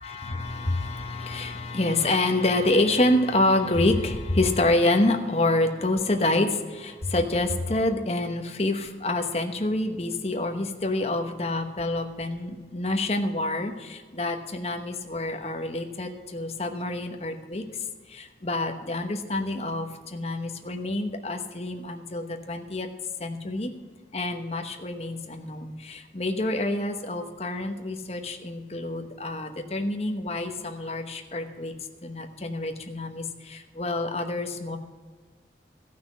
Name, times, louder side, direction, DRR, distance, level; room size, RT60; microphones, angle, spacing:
voice 1, 0.0-22.9 23.2-23.7 24.1-31.7 32.0-34.8, left 2 dB, 35° left, 5 dB, 1.1 m, -27 dB
15.0 x 6.0 x 7.4 m, 1.4 s
head